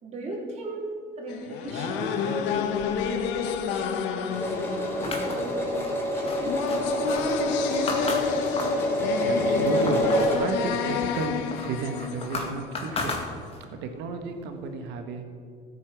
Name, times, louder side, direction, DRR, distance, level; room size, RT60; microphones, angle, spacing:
voice 1, 0.0-4.5 4.8-5.9 6.1-8.4, right 1 dB, 35° right, -2 dB, 3.9 m, -37 dB
sound 1, 1.3-13.2, left 7 dB, 75° left, 1.2 m, -30 dB
sound 2, 4.3-10.3, equal, 10° left, 4.0 m, -27 dB
sound 3, 5.0-8.9 9.3-10.4 10.7-13.7, left 3 dB, 30° left, 2.4 m, -35 dB
voice 2, 9.0-13.2 13.7-15.3, right 4 dB, 70° right, 5 dB, 1.6 m, -33 dB
15.0 x 8.6 x 6.2 m, 2.2 s
cardioid pair, 120°, 19 cm